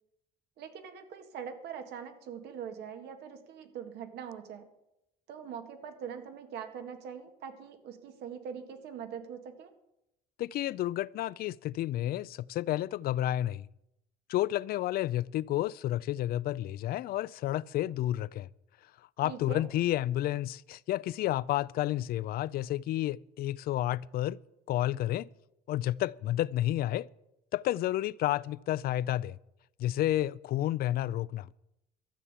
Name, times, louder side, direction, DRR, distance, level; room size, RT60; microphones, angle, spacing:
voice 1, 0.6-4.7 5.3-9.7 19.2-19.6, right 7 dB, 80° right, 1.8 m, -42 dB
voice 2, 10.4-13.7 14.3-18.5 19.2-24.4 24.7-25.3 25.7-27.1 27.5-29.4 29.8-31.5, left 14 dB, 65° left, 0.4 m, -31 dB
12.5 x 7.3 x 8.2 m
cardioid pair, 110°, 17 cm